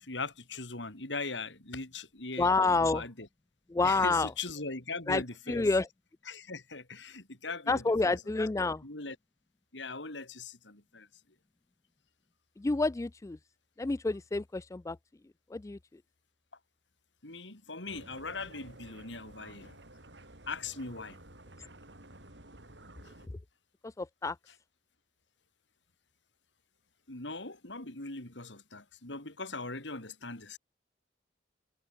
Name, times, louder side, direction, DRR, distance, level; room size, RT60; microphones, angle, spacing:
voice 1, 0.0-3.3 3.8-5.7 6.3-8.3 8.8-9.2 9.7-11.1 17.2-19.8 20.5-21.2 27.1-30.6, left 3 dB, 75° left, 4.2 m, -40 dB
voice 2, 2.4-3.0 3.7-4.3 5.1-5.2 5.5-5.9 7.7-8.8 12.6-13.4 13.8-15.0 15.5-15.8 24.0-24.4, left 3 dB, 15° left, 0.3 m, -28 dB
sound 1, 17.9-23.3, right 1 dB, 70° right, 6.4 m, -53 dB
head